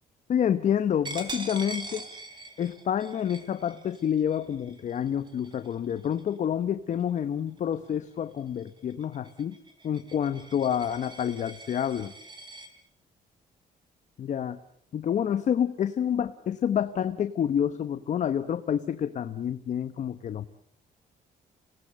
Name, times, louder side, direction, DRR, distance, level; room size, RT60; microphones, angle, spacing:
voice 1, 0.3-2.0 2.6-9.6 9.8-12.1 14.2-14.6 14.9-20.5, left 9 dB, 50° left, 10 dB, 1.0 m, -28 dB
Coin (dropping), 1.0-6.4 6.9-7.2 7.6-12.7, right 2 dB, 30° right, 3.5 m, -43 dB
27.5 x 18.5 x 7.6 m, 0.66 s
cardioid pair, 130°, 16 cm